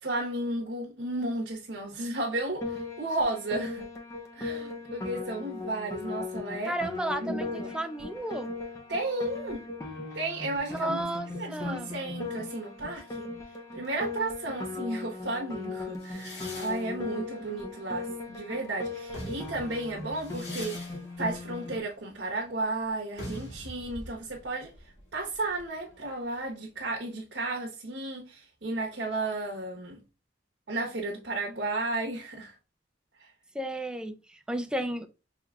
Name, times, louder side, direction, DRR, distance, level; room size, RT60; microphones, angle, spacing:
voice 1, 0.0-3.9 4.3-6.7 7.2-7.8 8.9-9.6 10.1-11.0 11.3-13.3 13.7-24.7 25.1-30.0 30.7-32.5 33.2-33.3, right 2 dB, 70° right, 1.1 m, -33 dB
Piano, 2.6-21.8, left 3 dB, 20° left, 0.9 m, -38 dB
voice 2, 6.7-8.5 10.6-11.9 33.5-35.1, right 1 dB, 5° right, 0.4 m, -33 dB
sound 1, 16.0-18.5 18.9-26.4, equal, 70° left, 2.1 m, -45 dB
5.7 x 3.2 x 2.4 m
head